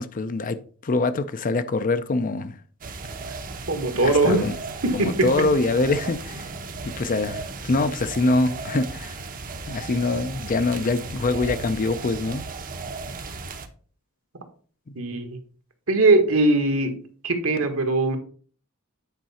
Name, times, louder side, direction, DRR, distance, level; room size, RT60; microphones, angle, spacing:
voice 1, 0.0-2.6 4.0-4.5 4.9-6.4 6.8-9.2 9.7-12.4 14.9-15.0, left 3 dB, 40° left, 0.5 m, -24 dB
sound 1, 2.8-13.7, right 3 dB, 40° right, 0.9 m, -35 dB
voice 2, 3.7-4.4 4.8-5.3 14.9-15.4 15.9-16.9 17.2-18.2, right 2 dB, 70° right, 1.5 m, -20 dB
9.1 x 4.8 x 4.2 m
head